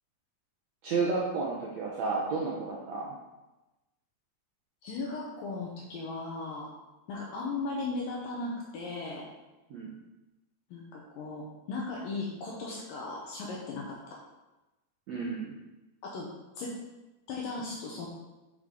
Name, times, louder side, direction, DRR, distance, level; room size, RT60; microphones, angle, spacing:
voice 1, 0.8-3.1 9.7-9.9 15.1-15.6, right 4 dB, 75° right, -4 dB, 1.6 m, -31 dB
voice 2, 4.8-6.7 7.1-9.3 10.7-14.2 16.0-16.8 17.3-18.1, left 3 dB, 70° left, -2 dB, 2.5 m, -37 dB
8.0 x 6.0 x 3.8 m, 1.0 s
omnidirectional pair, 4.4 m